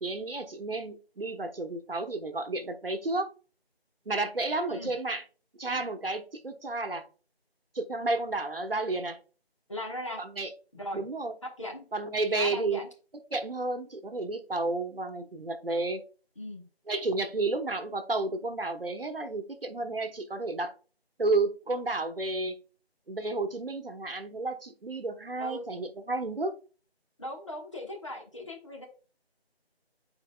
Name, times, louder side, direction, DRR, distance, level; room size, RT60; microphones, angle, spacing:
voice 1, 0.0-3.3 4.1-5.2 5.6-7.1 7.7-9.2 10.2-10.5 10.9-11.3 11.9-12.8 13.3-16.0 16.9-20.7 21.2-22.6 23.1-26.5, right 2 dB, 60° right, 7 dB, 1.0 m, -31 dB
voice 2, 9.7-10.2 10.7-11.0 11.4-11.8 12.3-12.9 16.4-16.6 25.4-25.6 27.2-28.9, left 1 dB, 30° left, 0 dB, 1.2 m, -38 dB
8.9 x 4.7 x 2.2 m, 0.37 s
figure-of-eight pair, 170°, 32 cm